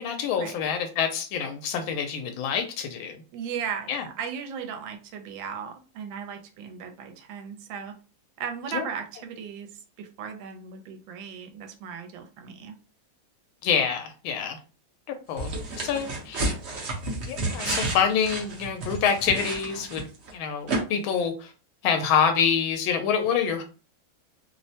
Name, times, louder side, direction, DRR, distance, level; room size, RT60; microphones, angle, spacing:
voice 1, 0.0-3.2 3.9-4.0 8.7-8.9 13.6-14.6 15.1-16.5 17.3-20.1 20.3-21.5 21.8-23.6, left 7 dB, 90° left, 6 dB, 1.4 m, -26 dB
voice 2, 3.3-8.0 8.4-12.7, right 7 dB, 80° right, 5 dB, 1.3 m, -36 dB
sound 1, 15.4-20.3 20.7-20.8, right 2 dB, 60° right, 0.7 m, -31 dB
3.3 x 2.0 x 2.7 m, 0.34 s
omnidirectional pair, 2.1 m